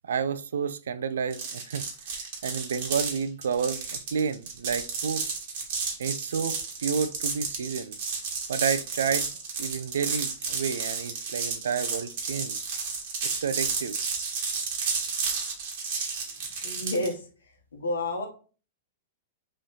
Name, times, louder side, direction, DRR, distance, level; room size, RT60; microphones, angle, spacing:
voice 1, 0.0-5.2 6.0-7.9 8.5-9.3 9.6-12.6 13.2-14.0, right 6 dB, 80° right, 0.3 m, -30 dB
sound 1, 1.3-17.1, right 5 dB, 60° right, 1.2 m, -32 dB
voice 2, 16.6-17.2 17.7-18.3, left 1 dB, 85° left, 1.0 m, -29 dB
3.1 x 2.7 x 3.8 m
hypercardioid pair, 115°, 0 cm